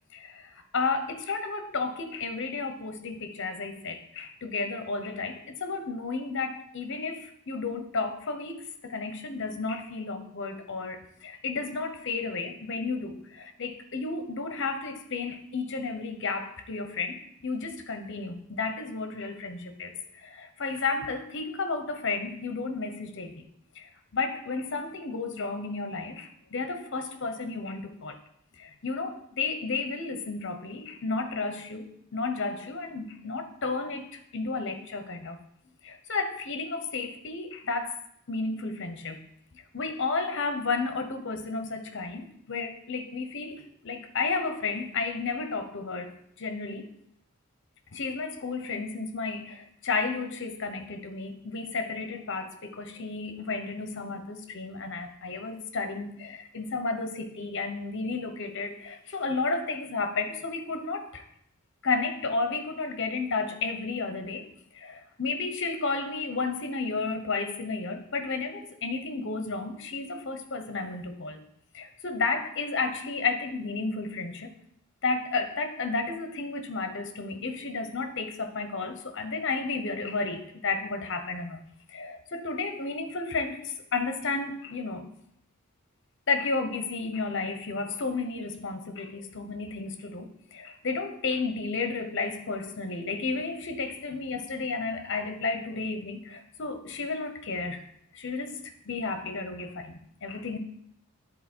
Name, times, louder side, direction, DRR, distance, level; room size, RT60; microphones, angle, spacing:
voice 1, 0.1-23.4 23.7-28.2 28.6-35.4 35.8-38.0 38.3-39.3 39.5-46.9 47.9-61.2 61.8-64.5 64.7-71.4 71.7-74.6 75.0-85.1 86.3-97.8 98.1-100.6, left 4 dB, 55° left, 8 dB, 0.9 m, -32 dB
10.0 x 4.1 x 4.4 m, 0.72 s
head